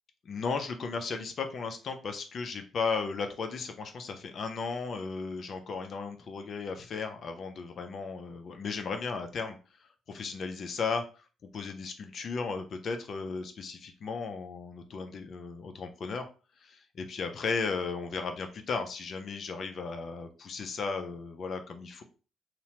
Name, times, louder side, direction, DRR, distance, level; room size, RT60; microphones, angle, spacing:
voice 1, 0.3-9.8 10.1-11.2 11.5-16.3 16.6-22.0, left 4 dB, 55° left, 6 dB, 0.4 m, -35 dB
2.8 x 2.0 x 2.8 m, 0.35 s
cardioid pair, 90°, 0 cm